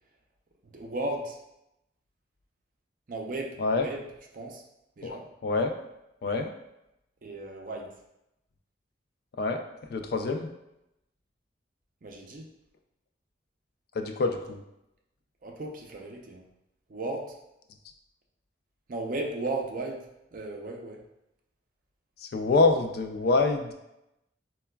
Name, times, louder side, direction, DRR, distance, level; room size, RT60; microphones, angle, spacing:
voice 1, 0.6-1.4 3.1-4.0 4.3-4.6 5.0-5.3 7.2-8.0 12.0-12.4 15.4-16.4 16.9-17.4 18.9-21.0, right 2 dB, 45° right, 1 dB, 0.4 m, -35 dB
voice 2, 5.0-5.7 6.2-6.5 9.4-9.6 9.9-10.5 13.9-14.6 22.2-23.7, left 3 dB, 55° left, 4 dB, 0.3 m, -26 dB
4.6 x 2.2 x 2.2 m, 0.87 s
head